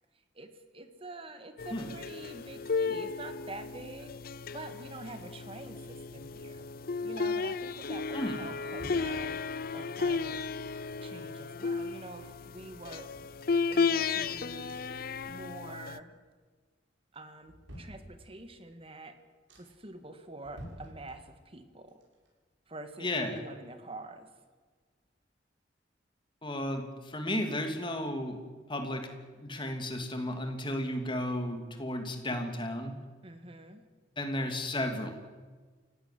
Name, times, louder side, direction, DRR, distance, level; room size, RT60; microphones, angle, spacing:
voice 1, 0.3-4.1 4.5-6.7 7.0-9.4 9.7-10.4 11.0-13.1 13.7-14.8 15.3-16.2 17.1-19.1 19.6-22.0 22.7-24.3 33.2-33.8, right 2 dB, 30° right, 8 dB, 1.9 m, -46 dB
sound 1, 1.6-16.0, left 4 dB, 50° left, 0.6 m, -34 dB
sound 2, 8.4-9.8 10.5-11.9 12.3-12.4 12.6-14.2 14.7-15.8 16.2-16.7 17.1-18.6 19.0-19.1 19.5-20.0 20.4-21.6 21.9-23.7 24.0-24.1, equal, 85° right, 7.0 m, -52 dB
voice 2, 23.0-23.4 26.4-28.4 28.7-29.1 29.4-32.9 34.2-35.1, left 1 dB, 25° left, 5 dB, 2.9 m, -33 dB
29.0 x 16.0 x 7.7 m, 1.4 s
head